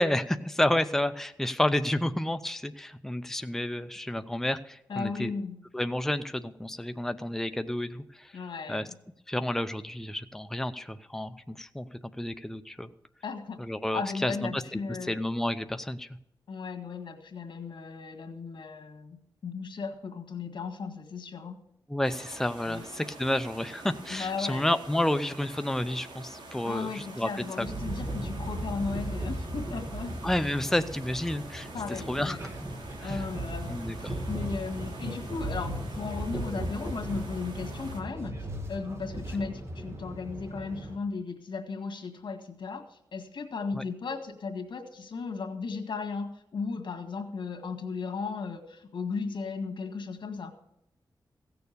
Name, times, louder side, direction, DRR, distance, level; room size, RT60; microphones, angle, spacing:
voice 1, 0.0-5.3 5.7-8.3 8.7-8.9 9.3-12.9 13.6-14.8 15.1-16.1 21.9-27.3 27.6-27.7 30.2-32.4 33.0-33.2 33.7-34.1 43.7-43.8, left 1 dB, 5° left, 10 dB, 0.6 m, -30 dB
voice 2, 4.9-5.6 8.3-9.0 13.2-13.6 13.9-15.2 16.5-21.6 22.7-22.8 24.1-24.6 26.6-30.2 31.7-32.4 33.0-38.4 38.7-50.5, left 4 dB, 80° left, 5 dB, 1.8 m, -36 dB
sound 1, 22.0-38.0, right 2 dB, 85° right, 2.9 m, -46 dB
sound 2, 27.6-41.0, right 1 dB, 35° right, 1.9 m, -37 dB
16.0 x 7.0 x 6.8 m, 0.83 s
wide cardioid pair, 85°, 8 cm